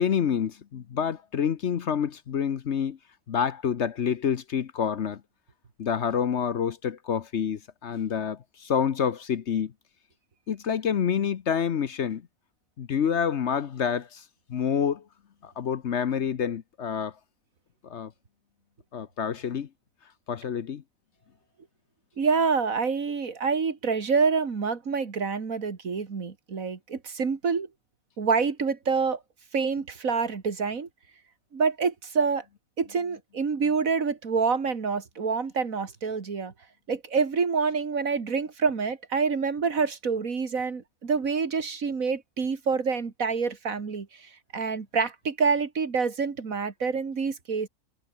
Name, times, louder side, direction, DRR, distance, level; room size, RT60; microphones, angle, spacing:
voice 1, 0.0-3.0 3.3-5.2 5.8-9.7 10.5-12.2 12.8-14.2 14.5-15.0 15.4-17.1 17.8-18.1 18.9-19.7 20.3-20.8, left 7 dB, 55° left, 1.1 m, -27 dB
voice 2, 22.2-27.7 28.2-29.2 29.5-30.9 31.5-32.4 32.8-36.5 36.9-47.7, right 5 dB, 70° right, 2.4 m, -27 dB
omnidirectional pair, 1.5 m